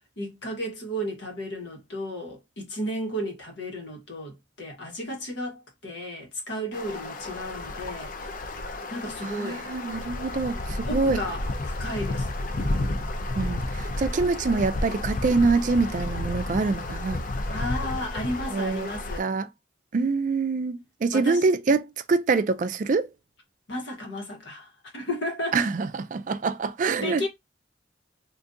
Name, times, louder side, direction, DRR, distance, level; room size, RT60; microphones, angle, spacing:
voice 1, 0.2-8.1 8.9-9.7 10.9-12.3 17.5-19.3 21.1-21.5 23.7-25.6 27.0-27.3, equal, 75° left, 1.3 m, -33 dB
sound 1, 6.7-19.2, left 2 dB, 45° left, 0.5 m, -31 dB
voice 2, 9.2-11.2 13.4-17.2 18.5-18.9 19.2-19.5 19.9-23.1 25.5-27.3, right 4 dB, 45° right, 0.3 m, -25 dB
3.7 x 2.6 x 2.6 m
head